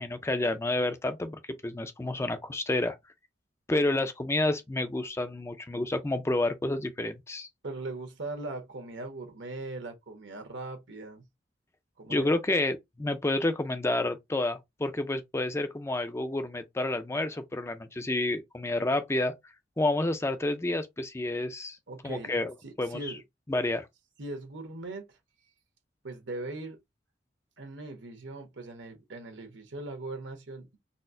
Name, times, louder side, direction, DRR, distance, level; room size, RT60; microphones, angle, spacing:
voice 1, 0.0-3.0 3.7-7.5 12.1-19.3 19.8-21.8 22.0-22.5 22.8-23.1 23.5-23.9, left 2 dB, 15° left, 0.4 m, -29 dB
voice 2, 7.6-11.2 12.0-12.4 21.9-22.3 22.6-23.2 24.2-25.2 26.0-26.8 27.6-30.8, right 2 dB, 80° right, 1.1 m, -40 dB
4.1 x 2.0 x 2.5 m
head